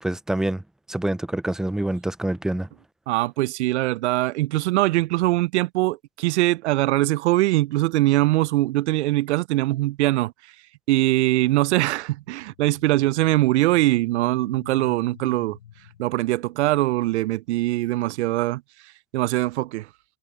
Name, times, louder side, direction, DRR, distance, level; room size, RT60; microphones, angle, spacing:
voice 1, 0.0-0.6 0.9-2.7, right 1 dB, ahead, 0.3 m, -26 dB
voice 2, 3.1-10.3 10.9-15.6 16.0-18.6 19.1-19.9, right 17 dB, 80° right, 0.5 m, -22 dB
sound 1, 12.4-17.2, left 10 dB, 85° left, 8.0 m, -49 dB
hypercardioid pair, 110°, 34 cm